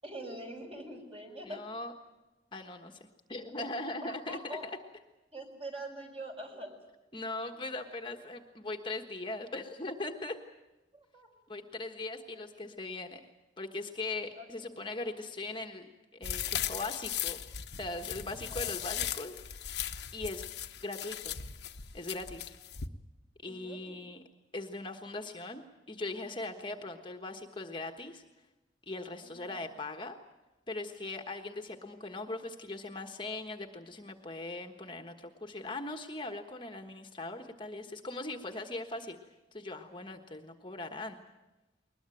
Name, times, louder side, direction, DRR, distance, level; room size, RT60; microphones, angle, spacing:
voice 1, 0.0-1.6 3.6-3.7 4.0-4.7 5.3-6.7 10.9-11.3 12.3-12.4 14.4-14.7 18.3-18.8 23.5-24.0 29.2-29.7, right 1 dB, 35° right, 3 dB, 5.5 m, -44 dB
voice 2, 1.4-1.9 2.5-3.0 3.3-4.7 7.1-10.4 11.5-13.2 13.6-17.4 17.8-19.8 20.1-20.4 20.8-21.4 21.9-22.5 23.4-24.2 24.5-25.6 25.9-28.2 28.9-30.1 30.7-39.2 39.5-41.2, left 2 dB, 25° left, 4 dB, 1.4 m, -40 dB
sound 1, 16.2-22.9, left 10 dB, 65° left, 1.1 m, -38 dB
21.5 x 20.5 x 9.2 m, 1.1 s
head